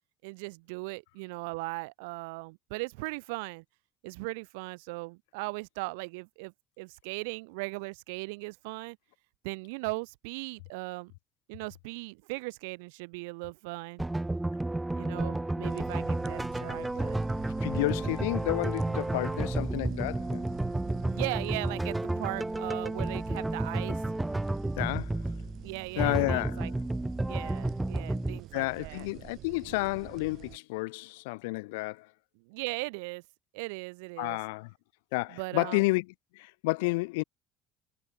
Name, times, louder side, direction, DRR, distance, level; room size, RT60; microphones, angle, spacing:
voice 1, 0.2-3.6 4.0-9.0 9.4-11.1 11.5-14.1 14.9-17.2 20.9-24.0 25.6-26.7 27.2-29.1 32.4-33.2 33.5-34.4 35.3-35.9, right 28 dB, 75° right, 0.7 m, -38 dB
sound 1, 14.0-28.4, right 2 dB, 10° right, 0.5 m, -31 dB
sound 2, 15.7-30.6, right 14 dB, 60° right, 6.0 m, -48 dB
voice 2, 17.6-20.4 24.8-25.2 26.0-26.7 28.5-32.1 34.2-34.7 35.1-36.0 36.4-37.2, left 25 dB, 75° left, 0.6 m, -31 dB
hypercardioid pair, 60°, 0 cm